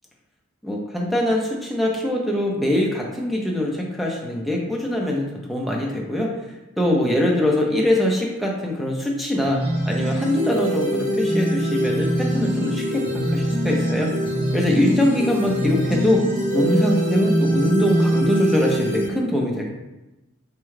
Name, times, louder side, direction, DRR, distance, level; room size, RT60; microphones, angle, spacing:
voice 1, 0.6-6.3 6.8-9.6 9.8-14.1 14.5-16.2 16.5-19.7, left 1 dB, ahead, -2 dB, 0.4 m, -23 dB
sound 1, 9.4-19.0, equal, 60° right, 1.2 m, -23 dB
3.5 x 2.2 x 3.1 m, 1.0 s
head